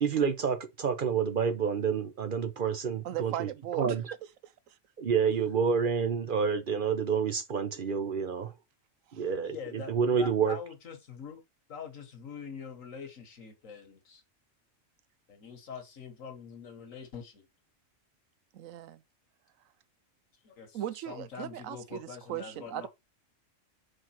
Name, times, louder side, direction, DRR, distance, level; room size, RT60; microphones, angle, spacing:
voice 1, 0.0-3.5 3.8-4.0 5.0-8.5 9.1-10.6, right 6 dB, 50° right, 0.8 m, -28 dB
voice 2, 3.0-4.0 4.4-4.8 9.1-9.3 18.5-19.0 20.7-22.9, right 12 dB, 90° right, 1.0 m, -38 dB
voice 3, 9.4-9.9 10.2-11.4 11.7-14.2 15.3-17.4 20.4-20.8 21.1-22.9, left 6 dB, 85° left, 1.8 m, -44 dB
5.2 x 3.8 x 5.8 m
omnidirectional pair, 1.4 m